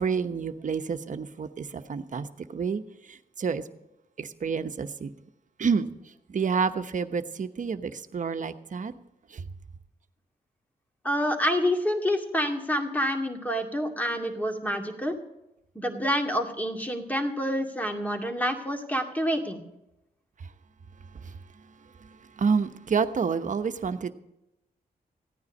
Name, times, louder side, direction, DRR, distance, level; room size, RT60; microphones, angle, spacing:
voice 1, 0.0-3.6 4.2-5.1 5.6-5.9 6.3-8.9 9.3-9.4 21.1-21.3 22.0-24.1, right 5 dB, 55° right, 9 dB, 1.0 m, -29 dB
voice 2, 11.0-15.1 15.8-19.6, equal, 10° left, 3 dB, 2.3 m, -28 dB
15.5 x 9.6 x 5.4 m, 0.91 s
cardioid pair, 75°, 16 cm